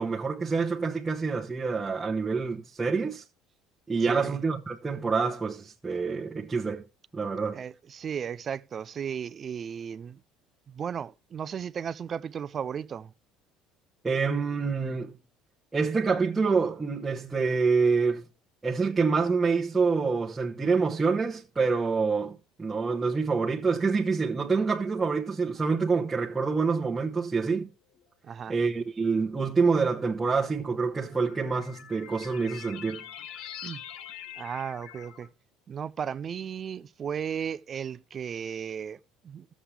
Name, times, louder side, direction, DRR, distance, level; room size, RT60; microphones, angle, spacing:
voice 1, 0.0-3.2 3.9-6.8 7.1-7.6 14.0-15.2 15.7-18.3 18.6-27.7 28.5-33.0, right 4 dB, 10° right, 1.0 m, -27 dB
voice 2, 4.0-4.4 7.5-10.2 10.7-13.1 28.2-28.5 33.6-33.8 34.4-35.3 35.7-39.5, right 7 dB, 30° right, 0.4 m, -35 dB
sound 1, 25.2-25.8 26.7-26.8 28.0-28.1 30.2-35.3, left 10 dB, 60° left, 1.0 m, -45 dB
14.5 x 7.3 x 3.3 m
cardioid pair, 165°, 0 cm